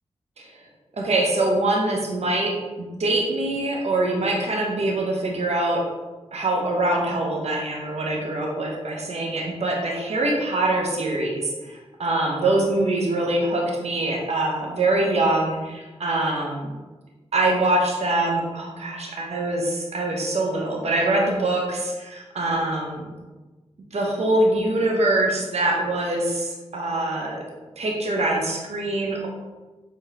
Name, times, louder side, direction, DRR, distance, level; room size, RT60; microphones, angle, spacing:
voice 1, 1.0-5.8 6.3-16.7 17.3-23.1 23.9-27.4 27.8-29.3, right 2 dB, 65° right, -1 dB, 0.9 m, -24 dB
5.0 x 3.5 x 2.8 m, 1.2 s
cardioid pair, 40°, 12 cm